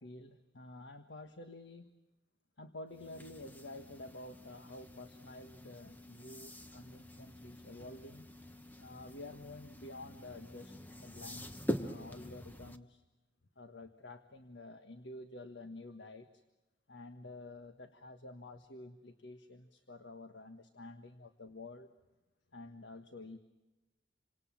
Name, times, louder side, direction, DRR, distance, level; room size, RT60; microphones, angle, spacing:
voice 1, 0.0-1.9 2.6-8.3 8.8-13.0 13.6-16.4 16.9-21.9 22.5-23.4, left 2 dB, 80° left, 8 dB, 1.5 m, -50 dB
sound 1, 2.9-12.8, equal, 10° left, 1.1 m, -45 dB
28.5 x 25.5 x 7.5 m, 1.1 s
head